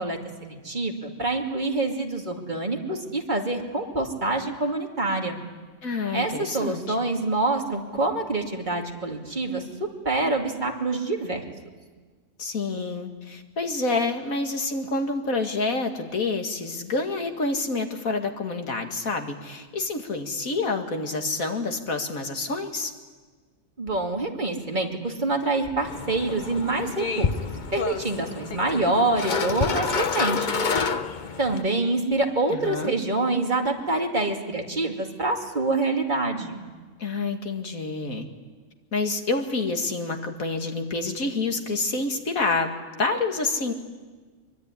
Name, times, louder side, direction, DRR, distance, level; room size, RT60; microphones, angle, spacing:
voice 1, 0.0-5.4 6.1-11.4 23.8-27.3 27.7-30.6 31.4-36.6, right 2 dB, 35° right, 2 dB, 2.7 m, -26 dB
voice 2, 5.8-7.0 12.4-22.9 32.5-32.9 37.0-38.3 38.9-43.7, left 3 dB, 80° left, 5 dB, 2.5 m, -28 dB
sound 1, 25.8-31.6, left 5 dB, 40° left, 0.9 m, -28 dB
23.5 x 23.5 x 9.9 m, 1.4 s
omnidirectional pair, 1.4 m